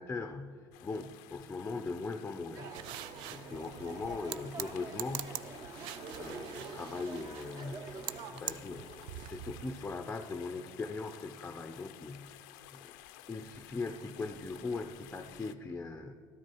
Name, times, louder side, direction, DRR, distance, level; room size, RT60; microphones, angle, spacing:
voice 1, 0.0-2.7 3.3-5.5 6.2-8.0 8.3-12.4 12.7-12.9 13.3-16.1, left 3 dB, 15° left, 8 dB, 0.5 m, -40 dB
sound 1, 0.7-15.6, left 14 dB, 90° left, 0.5 m, -54 dB
sound 2, 2.6-8.3, right 4 dB, 40° right, 0.8 m, -47 dB
sound 3, 2.7-9.9, right 13 dB, 65° right, 0.4 m, -45 dB
13.0 x 13.0 x 4.6 m, 2.5 s
cardioid pair, 135°, 9 cm